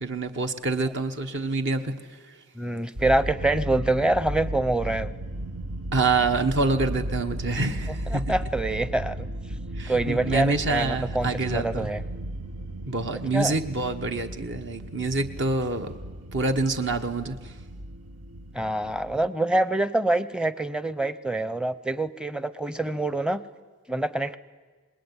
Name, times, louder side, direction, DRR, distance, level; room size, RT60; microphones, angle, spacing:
voice 1, 0.0-1.9 5.9-8.2 9.8-11.9 12.9-16.0 16.3-17.5, right 3 dB, 55° right, 7 dB, 1.3 m, -26 dB
voice 2, 2.5-5.1 7.9-9.3 9.9-12.0 13.3-13.6 18.5-23.4 23.9-24.4, right 2 dB, 5° right, 15 dB, 0.7 m, -26 dB
sound 1, 2.9-19.3, right 1 dB, 85° right, 1.2 m, -35 dB
26.0 x 20.5 x 9.7 m, 1.4 s
head